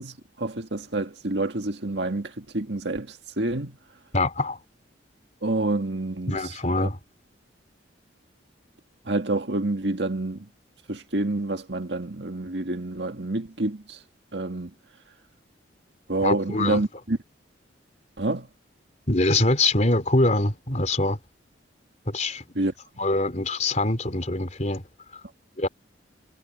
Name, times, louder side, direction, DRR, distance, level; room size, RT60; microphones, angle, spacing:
voice 1, 0.0-3.8 5.4-6.9 9.1-10.5 10.9-14.0 14.3-14.7 16.1-17.2 18.2-18.5 22.6-22.7, right 2 dB, 65° right, 2.0 m, -28 dB
voice 2, 4.1-4.6 6.3-7.0 16.2-16.8 19.1-21.2 22.1-22.4 23.0-24.8 25.6-25.7, left 2 dB, 40° left, 3.9 m, -24 dB
head